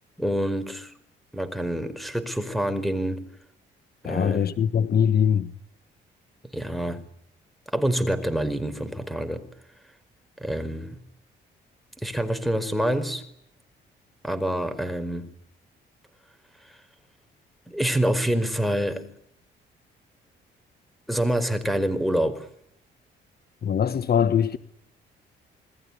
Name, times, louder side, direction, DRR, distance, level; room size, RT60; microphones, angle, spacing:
voice 1, 0.2-0.9 1.3-3.3 4.0-4.4 6.4-7.0 7.7-9.5 10.4-11.0 12.0-13.2 14.2-15.3 16.7-16.8 17.7-19.1 21.1-22.5, equal, ahead, 4.9 m, -26 dB
voice 2, 4.0-5.5 23.6-24.6, left 8 dB, 50° left, 1.4 m, -22 dB
28.0 x 20.5 x 9.9 m
cardioid pair, 90°, 20 cm